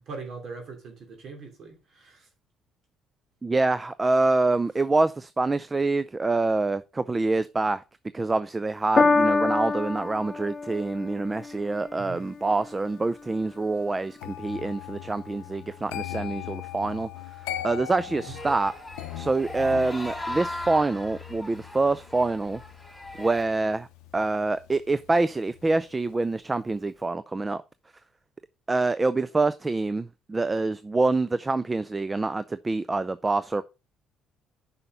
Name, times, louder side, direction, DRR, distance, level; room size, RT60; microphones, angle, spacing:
voice 1, 0.0-2.3 12.0-12.2 18.3-18.4, right 4 dB, 60° right, 2.6 m, -41 dB
voice 2, 3.4-7.8 8.1-17.1 17.6-18.7 19.2-22.6 23.2-23.9 24.1-27.6 28.7-33.6, right 3 dB, 25° right, 0.4 m, -26 dB
Piano, 9.0-15.5 16.4-16.5, left 4 dB, 35° left, 0.7 m, -28 dB
sound 1, 14.2-25.2 25.4-25.8, left 12 dB, 90° left, 0.6 m, -40 dB
sound 2, 18.3-23.4, left 1 dB, 10° left, 3.6 m, -38 dB
5.8 x 5.6 x 5.2 m
supercardioid pair, 70°, 0 cm